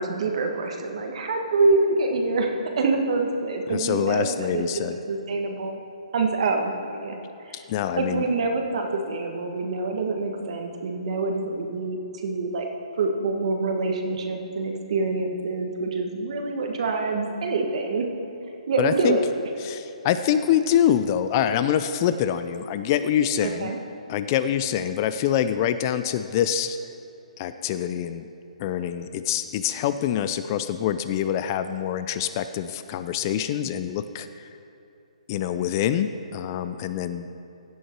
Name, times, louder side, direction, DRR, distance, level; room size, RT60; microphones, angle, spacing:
voice 1, 0.0-2.5 2.8-5.8 6.1-7.2 7.4-7.7 8.0-12.7 13.0-18.1 18.7-19.2 23.4-23.8, right 3 dB, 55° right, 3 dB, 1.5 m, -26 dB
voice 2, 3.7-5.0 7.5-8.2 18.8-19.2 19.6-23.7 24.1-26.8 27.4-28.3 28.6-34.5 35.3-37.3, left 10 dB, 30° left, 11 dB, 0.4 m, -25 dB
16.0 x 6.4 x 4.6 m, 2.8 s
hypercardioid pair, 155°, 4 cm